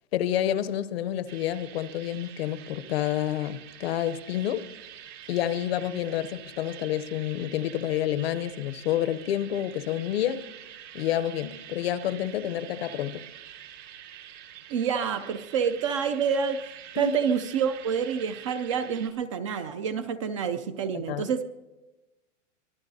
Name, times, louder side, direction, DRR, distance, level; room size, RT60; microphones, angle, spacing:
voice 1, 0.1-4.7 5.3-10.4 10.9-13.2 17.0-17.2 20.9-21.3, left 11 dB, 55° left, 0.8 m, -29 dB
sound 1, 1.3-19.1, right 10 dB, 75° right, 4.6 m, -46 dB
voice 2, 14.7-21.4, right 7 dB, 25° right, 0.4 m, -28 dB
24.5 x 19.0 x 2.7 m
hypercardioid pair, 150°, 37 cm